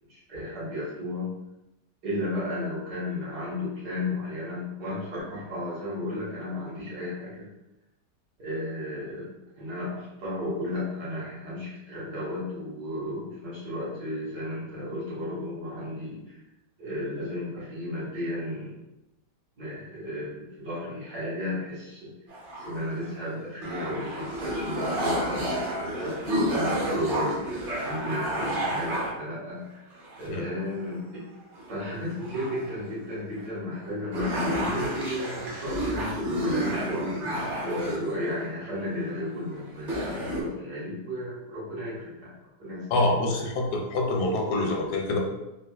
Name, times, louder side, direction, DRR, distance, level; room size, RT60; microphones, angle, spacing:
voice 1, 0.1-1.3 2.0-7.5 8.4-9.3 9.5-16.4 16.8-18.8 19.6-22.1 22.5-25.5 26.0-29.8 30.2-31.1 31.7-37.2 37.6-42.3 42.6-43.5 44.6-44.7, left 1 dB, 70° right, -7 dB, 1.9 m, -34 dB
sound 1, 22.3-23.2 23.6-29.1 29.9-30.6 30.9-31.0 31.5-32.7 33.4-33.5 33.8-33.9 34.1-38.5 39.4-39.5 39.8-40.4, right 1 dB, 55° right, 0.6 m, -30 dB
voice 2, 42.9-45.2, left 2 dB, 80° left, 2 dB, 1.2 m, -26 dB
4.0 x 2.4 x 2.3 m, 0.95 s
omnidirectional pair, 1.8 m